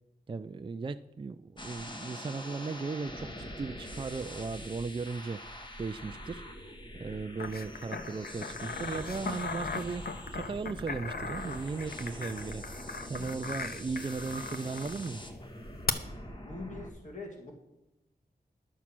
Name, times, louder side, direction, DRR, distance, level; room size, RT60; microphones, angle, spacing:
voice 1, 0.3-6.7 7.0-15.2, right 4 dB, 30° right, 0.4 m, -37 dB
sound 1, 1.6-16.9, equal, 30° left, 1.4 m, -44 dB
sound 2, 7.4-15.1 15.9-16.0, left 5 dB, 65° left, 0.8 m, -38 dB
voice 2, 16.4-17.5, left 2 dB, 45° left, 2.0 m, -43 dB
11.0 x 7.2 x 6.0 m
wide cardioid pair, 75°, 17 cm